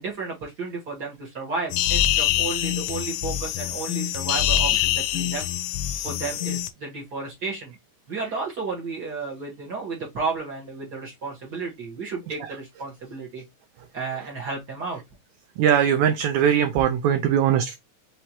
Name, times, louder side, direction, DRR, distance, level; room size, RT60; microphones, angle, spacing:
voice 1, 0.0-5.5 6.0-7.7 8.1-13.4 13.9-15.0, right 4 dB, 55° right, 1.1 m, -32 dB
sound 1, 1.7-6.7, left 12 dB, 80° left, 1.8 m, -25 dB
voice 2, 15.6-17.8, right 9 dB, 90° right, 1.6 m, -20 dB
5.6 x 3.2 x 2.9 m
omnidirectional pair, 3.9 m